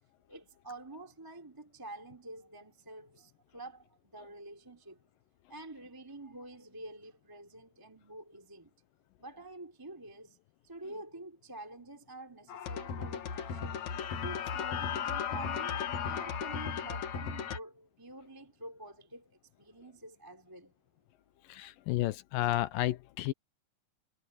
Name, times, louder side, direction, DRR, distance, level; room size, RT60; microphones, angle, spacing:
voice 1, 0.3-5.0 5.5-8.7 9.2-10.4 10.6-13.8 14.2-20.7, right 2 dB, 5° right, 2.2 m, -48 dB
sound 1, 12.5-17.6, left 7 dB, 55° left, 2.6 m, -35 dB
voice 2, 21.5-23.3, left 15 dB, 80° left, 2.3 m, -31 dB
omnidirectional pair, 4.4 m